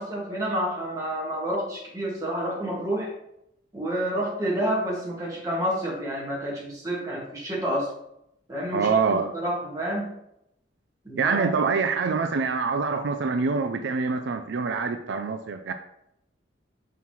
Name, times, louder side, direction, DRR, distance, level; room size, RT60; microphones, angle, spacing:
voice 1, 0.0-3.1 3.7-7.9 8.5-10.1 11.1-11.5, equal, 20° right, -4 dB, 1.9 m, -29 dB
voice 2, 8.7-9.3 11.2-15.7, right 4 dB, 75° right, 7 dB, 0.4 m, -25 dB
5.8 x 5.5 x 3.1 m, 0.79 s
head